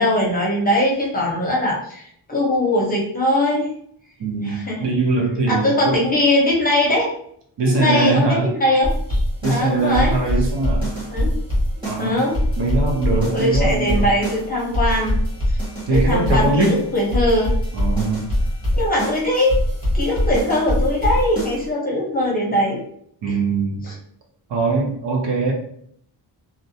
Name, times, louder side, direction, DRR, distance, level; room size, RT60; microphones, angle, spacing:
voice 1, 0.0-3.7 4.4-4.8 5.5-7.1 7.7-10.1 11.1-11.4 11.7-12.4 12.8-13.0 13.3-15.2 15.5-15.6 15.9-17.6 18.7-19.6 19.9-22.8 23.8-23.9, left 1 dB, 20° left, -4 dB, 0.7 m, -21 dB
voice 2, 4.2-6.1 7.6-8.5 9.4-10.9 11.8-12.3 12.6-14.1 15.9-16.8 17.7-18.3 23.2-23.8 24.5-25.5, right 3 dB, 75° right, -1 dB, 0.8 m, -21 dB
sound 1, 8.8-21.7, equal, 10° right, 1.1 m, -23 dB
2.5 x 2.1 x 2.7 m, 0.66 s
wide cardioid pair, 150°, 44 cm